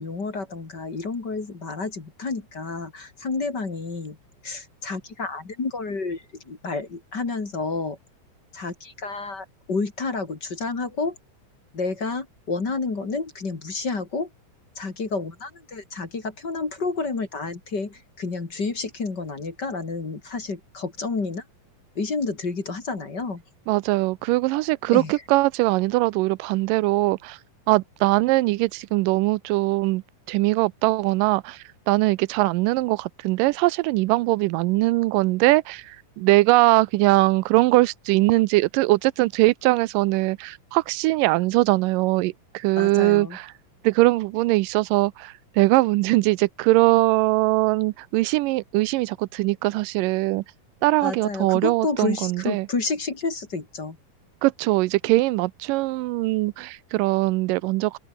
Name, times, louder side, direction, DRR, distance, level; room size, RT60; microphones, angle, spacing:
voice 1, 0.0-4.2 4.4-8.0 8.5-11.2 11.7-14.3 14.7-21.4 21.9-23.4 24.9-25.1 42.8-43.4 51.0-54.0, left 4 dB, 30° left, 3.3 m, -30 dB
voice 2, 23.7-27.4 27.7-43.5 43.8-50.4 50.8-52.7 54.4-58.0, right 20 dB, 85° right, 2.2 m, -21 dB
omnidirectional pair, 3.8 m